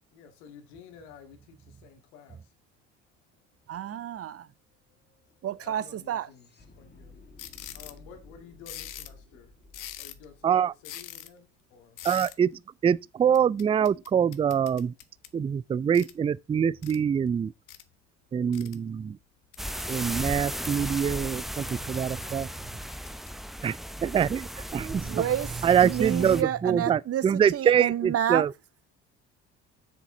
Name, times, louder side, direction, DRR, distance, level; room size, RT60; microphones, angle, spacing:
voice 1, 0.1-2.5 5.4-6.5 6.8-7.1 7.7-9.5 10.0-12.0, left 6 dB, 80° left, 2.1 m, -51 dB
sound 1, 3.2-3.3 3.5-11.7, left 3 dB, 30° left, 2.6 m, -55 dB
voice 2, 3.7-4.5 5.4-6.3 25.0-25.5 25.8-28.5, right 11 dB, 40° right, 0.7 m, -30 dB
sound 2, 7.4-8.0 8.7-9.2 9.7-10.3 10.8-11.3 12.0-12.4 13.3-15.4 15.9-16.2 16.8-17.0 17.7-17.8 18.5-18.8 19.5-20.0 20.5-21.1 21.8-22.2 22.9-23.3, left 12 dB, 60° left, 1.3 m, -43 dB
voice 3, 10.4-10.7 12.0-14.9 15.3-17.5 18.3-19.2 19.9-22.5 23.6-23.8 24.0-25.2 25.6-28.5, right 8 dB, 15° right, 0.3 m, -25 dB
sound 3, 19.6-26.4, equal, ahead, 0.8 m, -36 dB
7.4 x 6.6 x 3.8 m
hypercardioid pair, 65°, 35 cm